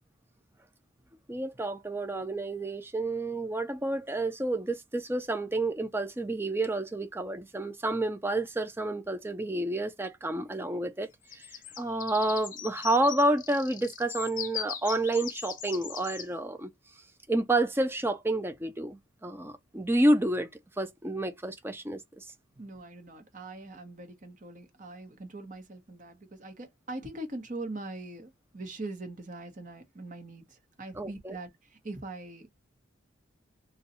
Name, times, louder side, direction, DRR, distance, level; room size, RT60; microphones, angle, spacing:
voice 1, 1.3-11.1 11.3-11.5 11.8-16.7 17.3-20.5 20.8-22.2 31.0-31.4, right 1 dB, 10° right, 0.5 m, -29 dB
sound 1, 11.3-16.3, left 9 dB, 40° left, 0.7 m, -40 dB
voice 2, 22.6-32.5, right 2 dB, 40° right, 0.9 m, -42 dB
2.7 x 2.3 x 4.0 m
head